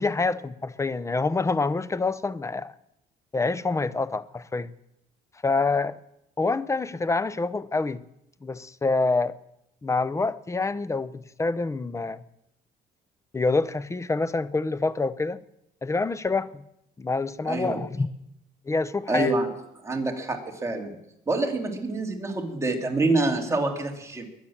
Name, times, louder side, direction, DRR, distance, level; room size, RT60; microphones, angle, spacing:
voice 1, 0.0-2.7 3.3-4.7 5.4-6.0 6.4-8.0 8.4-9.4 9.8-12.2 13.3-15.4 15.8-16.6 17.0-18.1 18.7-19.3, left 3 dB, 15° left, 0.7 m, -26 dB
voice 2, 17.5-17.8 19.1-19.5 19.8-21.0 21.3-24.3, right 2 dB, 15° right, 2.9 m, -26 dB
22.5 x 8.1 x 7.3 m
cardioid pair, 110°, 17 cm